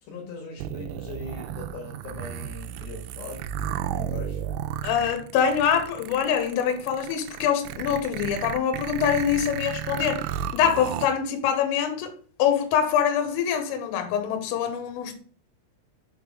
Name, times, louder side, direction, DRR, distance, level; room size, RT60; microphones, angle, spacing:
voice 1, 0.0-3.5 3.9-4.4, left 4 dB, 65° left, 3.3 m, -40 dB
sound 1, 0.6-11.1, right 10 dB, 85° right, 2.9 m, -33 dB
voice 2, 4.8-12.1 12.4-15.1, left 8 dB, 80° left, 3.4 m, -24 dB
7.2 x 3.5 x 4.7 m
omnidirectional pair, 5.9 m